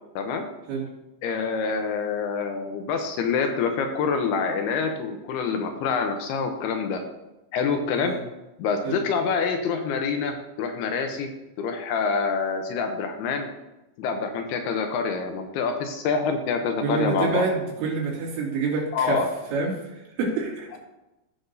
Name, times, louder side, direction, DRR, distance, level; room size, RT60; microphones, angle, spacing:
voice 1, 1.2-7.0 7.5-8.1 8.6-11.3 11.6-13.5 14.0-17.5 18.9-19.3, left 5 dB, 75° left, 5 dB, 2.5 m, -26 dB
voice 2, 16.8-19.2 19.5-20.7, right 4 dB, 85° right, -4 dB, 4.6 m, -27 dB
16.0 x 5.9 x 2.6 m, 0.97 s
omnidirectional pair, 5.0 m